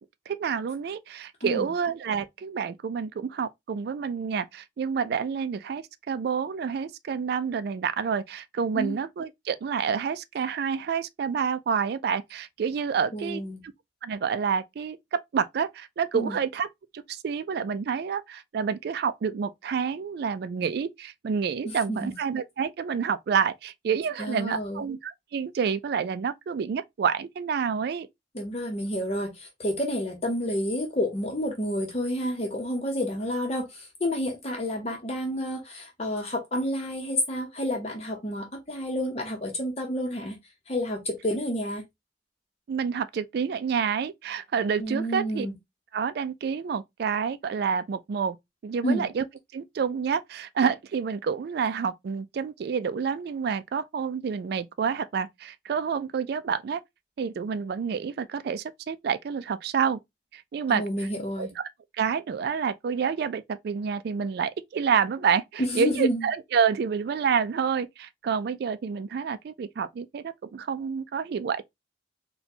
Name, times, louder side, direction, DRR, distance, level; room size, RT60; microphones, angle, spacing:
voice 1, 0.3-13.4 14.0-16.7 16.9-28.1 42.7-45.5 45.9-48.4 48.6-49.3 49.5-56.8 57.2-60.0 60.3-60.8 61.4-61.6 62.0-71.6, right 6 dB, 60° right, 0.3 m, -28 dB
voice 2, 13.1-13.6 16.1-16.4 21.9-22.1 24.2-24.8 28.3-40.4 40.7-41.8 44.8-45.5 48.8-49.0 60.7-61.5 65.6-66.3, equal, 35° left, 0.8 m, -29 dB
4.1 x 2.2 x 2.7 m
head